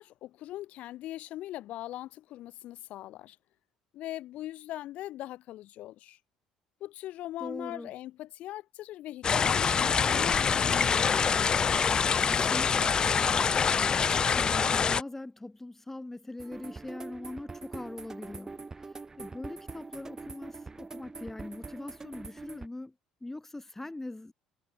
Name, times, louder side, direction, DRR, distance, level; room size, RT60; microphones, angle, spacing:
voice 1, 0.0-3.4 3.9-6.2 6.8-11.6, left 14 dB, 55° left, 1.6 m, -41 dB
voice 2, 7.4-7.9 12.2-13.8 14.2-18.6 19.2-22.9 23.2-24.3, left 2 dB, 10° left, 2.0 m, -42 dB
sound 1, 9.2-15.0, left 6 dB, 30° left, 0.3 m, -25 dB
sound 2, 16.4-22.7, right 3 dB, 20° right, 0.6 m, -44 dB
figure-of-eight pair, 55°, 3 cm